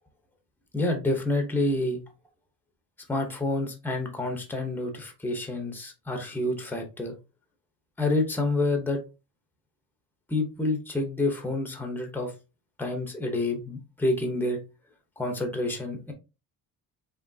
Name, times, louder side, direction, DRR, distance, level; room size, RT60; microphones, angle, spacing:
voice 1, 0.7-2.0 3.1-7.1 8.0-9.0 10.3-12.3 12.8-14.6 15.2-16.1, left 2 dB, 5° left, 4 dB, 0.8 m, -28 dB
5.1 x 3.1 x 2.7 m, 0.28 s
cardioid pair, 160°, 42 cm